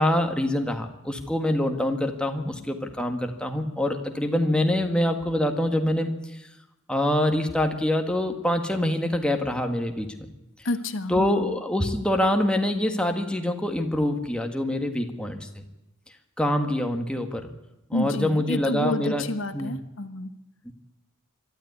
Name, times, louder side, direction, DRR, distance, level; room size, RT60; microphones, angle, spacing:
voice 1, 0.0-6.1 6.9-10.1 11.1-15.6 16.4-17.5 17.9-19.2 19.5-19.8 20.7-20.8, left 1 dB, 5° left, 4 dB, 1.7 m, -25 dB
voice 2, 10.6-11.5 17.9-20.4, left 2 dB, 70° left, 9 dB, 1.4 m, -29 dB
22.5 x 13.0 x 9.6 m, 0.96 s
head